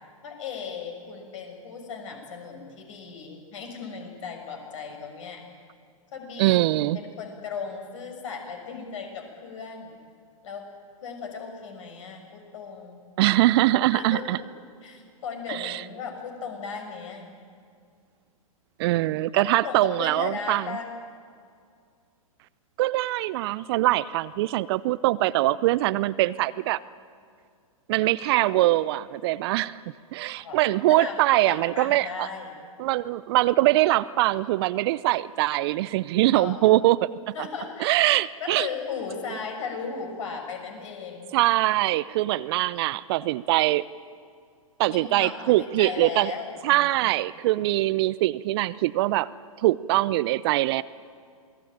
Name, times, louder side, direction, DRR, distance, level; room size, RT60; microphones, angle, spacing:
voice 1, 0.2-5.4 6.1-10.0 10.4-10.6 11.0-13.0 13.9-14.5 14.8-17.3 19.3-20.9 30.4-30.6 30.9-31.2 31.4-32.5 36.3-36.8 37.3-38.0 38.4-41.3 44.9-46.9, left 5 dB, 60° left, 3 dB, 6.6 m, -36 dB
voice 2, 6.4-7.0 13.2-14.4 15.5-15.8 18.8-20.8 22.8-26.8 27.9-29.8 30.1-32.3 32.8-37.0 37.8-38.7 41.3-43.8 44.8-46.3 46.6-49.3 49.6-50.8, right 17 dB, 45° right, 17 dB, 0.7 m, -23 dB
27.5 x 19.0 x 8.9 m, 2.2 s
figure-of-eight pair, 110°, 18 cm